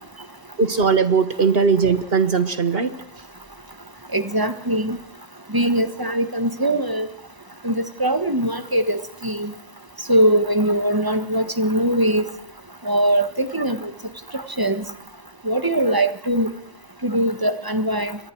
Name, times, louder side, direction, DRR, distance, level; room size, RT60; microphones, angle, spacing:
voice 1, 0.6-3.0, right 5 dB, 60° right, 1.5 m, -19 dB
voice 2, 4.1-5.0 5.5-7.1 7.6-9.5 10.1-12.3 12.8-13.9 14.3-14.8 15.4-16.5 17.0-18.2, right 1 dB, 20° right, 1.5 m, -21 dB
29.5 x 23.5 x 4.7 m
omnidirectional pair, 1.2 m